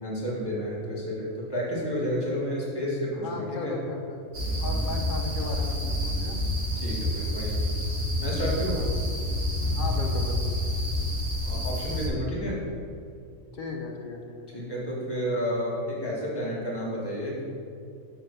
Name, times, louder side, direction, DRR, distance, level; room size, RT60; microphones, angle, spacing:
voice 1, 0.0-3.8 6.8-7.6 8.2-8.8 11.4-12.6 14.5-17.4, equal, 20° left, -6 dB, 1.7 m, -31 dB
voice 2, 3.2-4.3 4.6-6.4 8.7-8.9 9.7-10.5 13.5-14.5, left 3 dB, 45° left, 2 dB, 1.0 m, -36 dB
sound 1, 4.3-12.1, left 1 dB, 70° right, 1.6 m, -28 dB
7.1 x 3.9 x 6.6 m, 2.3 s
omnidirectional pair, 1.3 m